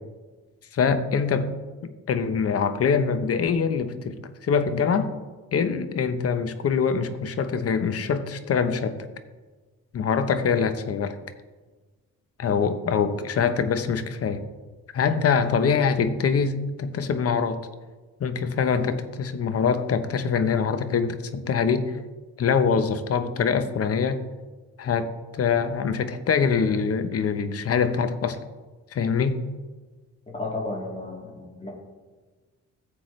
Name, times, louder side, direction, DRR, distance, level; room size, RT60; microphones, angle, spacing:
voice 1, 0.7-1.5 2.1-4.2 4.4-5.1 5.5-9.0 9.9-11.2 12.4-14.4 14.9-17.6 18.2-22.0 22.4-24.2 24.8-28.4 28.9-29.4, left 6 dB, 50° left, 10 dB, 0.9 m, -24 dB
voice 2, 30.3-31.7, left 2 dB, 25° left, -4 dB, 3.3 m, -33 dB
14.5 x 7.6 x 3.3 m, 1.3 s
cardioid pair, 90°, 30 cm